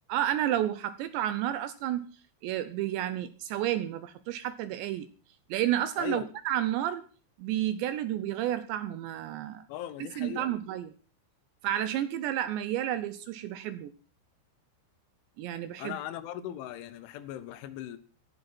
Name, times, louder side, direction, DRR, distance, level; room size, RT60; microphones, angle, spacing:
voice 1, 0.1-2.1 2.4-5.1 5.5-7.0 7.4-9.6 10.2-10.9 11.6-13.9 15.4-16.0, right 12 dB, 80° right, 2.7 m, -31 dB
voice 2, 6.0-6.3 9.7-10.5 15.8-18.0, left 11 dB, 75° left, 3.3 m, -39 dB
18.5 x 14.5 x 4.3 m
omnidirectional pair, 5.8 m